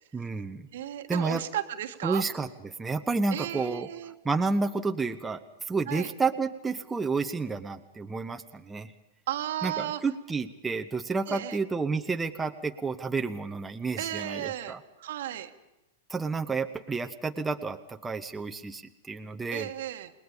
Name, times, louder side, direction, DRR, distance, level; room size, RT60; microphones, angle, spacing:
voice 1, 0.1-0.7 1.1-1.4 2.0-3.9 4.2-8.9 9.6-14.8 16.1-19.7, right 4 dB, 10° right, 5 dB, 1.1 m, -30 dB
voice 2, 0.7-2.2 3.3-4.1 5.9-6.1 9.3-10.0 11.3-11.6 14.0-14.7 15.0-15.5 19.5-20.1, right 12 dB, 60° right, 9 dB, 1.6 m, -34 dB
29.5 x 20.0 x 5.3 m, 0.95 s
figure-of-eight pair, 95°, 0 cm